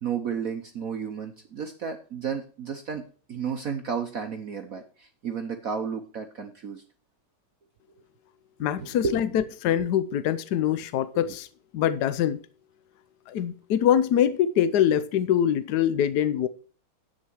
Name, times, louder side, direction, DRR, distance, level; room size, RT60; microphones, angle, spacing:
voice 1, 0.0-3.0 3.3-6.8 8.8-9.4 11.1-11.3, right 6 dB, 55° right, 1.0 m, -32 dB
voice 2, 8.6-11.5 11.7-12.4 13.3-16.5, left 10 dB, 75° left, 0.9 m, -24 dB
10.5 x 8.6 x 4.6 m
omnidirectional pair, 2.4 m